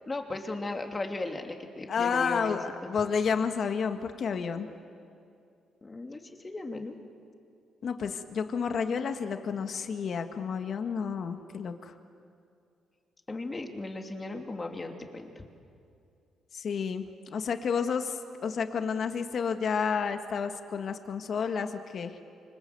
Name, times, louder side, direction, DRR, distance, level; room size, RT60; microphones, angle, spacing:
voice 1, 0.1-2.9 5.8-7.0 13.3-15.4, left 2 dB, 25° left, 4 dB, 3.0 m, -37 dB
voice 2, 1.9-4.7 7.8-11.9 16.5-17.0 17.3-18.1 18.4-22.2, left 6 dB, 55° left, 7 dB, 1.8 m, -30 dB
28.0 x 25.5 x 8.0 m, 2.5 s
cardioid pair, 90°, 0 cm